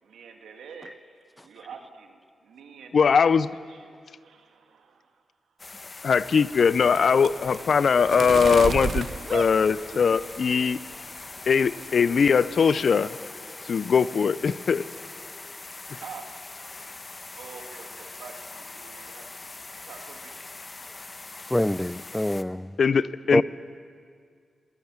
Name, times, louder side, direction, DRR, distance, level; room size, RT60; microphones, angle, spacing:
voice 1, 0.0-3.3 3.7-5.2 6.0-6.1 16.0-16.3 17.4-19.3 19.9-20.5, right 6 dB, 85° right, 2.0 m, -46 dB
voice 2, 2.9-3.5 6.0-10.8 11.5-13.2 13.6-14.9 15.9-16.0 22.8-23.4, left 6 dB, 70° left, 0.5 m, -21 dB
sound 1, 5.6-22.4, left 3 dB, 40° left, 1.2 m, -42 dB
sound 2, 6.1-10.5 10.9-11.4 11.7-12.0 12.2-12.9, right 5 dB, 65° right, 0.7 m, -34 dB
voice 3, 21.5-22.8 23.3-23.4, left 1 dB, 10° left, 0.5 m, -25 dB
20.5 x 17.0 x 7.5 m
supercardioid pair, 45°, 0 cm